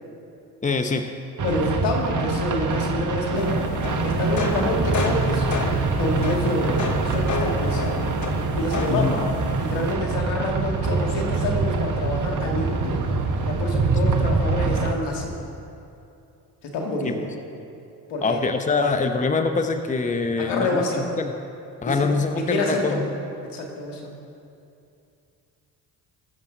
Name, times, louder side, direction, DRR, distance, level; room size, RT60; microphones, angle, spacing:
voice 1, 0.6-1.1 8.9-9.2 17.0-17.2 18.2-20.8 21.2-21.3 21.8-23.1, left 4 dB, 15° left, 6 dB, 0.8 m, -24 dB
voice 2, 1.4-3.7 4.0-5.6 6.0-8.1 8.5-9.3 9.6-13.2 13.4-15.3 16.6-17.3 18.1-18.5 20.4-21.2 21.8-23.1 23.5-24.0, left 2 dB, 70° left, 1 dB, 2.1 m, -27 dB
sound 1, 1.4-14.9, right 4 dB, 45° right, 1.3 m, -25 dB
sound 2, 3.3-9.9, left 3 dB, 40° left, 1.3 m, -30 dB
20.5 x 7.2 x 3.9 m, 2.7 s
hypercardioid pair, 55°, 44 cm